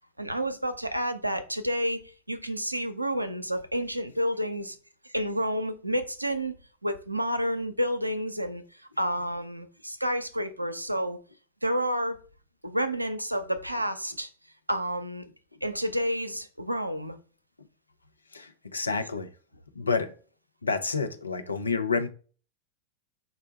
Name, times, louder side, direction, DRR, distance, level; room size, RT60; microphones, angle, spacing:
voice 1, 0.2-2.0 2.3-4.8 5.0-6.5 6.8-8.6 9.0-11.2 11.6-12.2 12.6-14.3 14.7-15.2 15.6-17.2, equal, 85° right, 0.5 m, -29 dB
voice 2, 18.3-19.3 19.8-20.1 20.6-22.1, left 4 dB, 80° left, 0.5 m, -29 dB
3.9 x 2.1 x 4.3 m
figure-of-eight pair, 90°, 0 cm